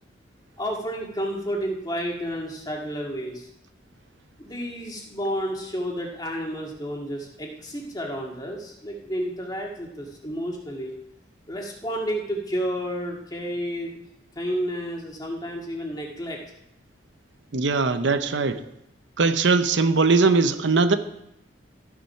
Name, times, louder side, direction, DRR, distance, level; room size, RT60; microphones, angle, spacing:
voice 1, 0.6-3.5 4.4-10.9 11.5-14.0 14.4-16.4, equal, 20° left, 0 dB, 2.1 m, -31 dB
voice 2, 17.5-18.6 19.2-21.0, right 4 dB, 85° right, 10 dB, 0.8 m, -20 dB
13.5 x 7.5 x 5.7 m, 0.80 s
head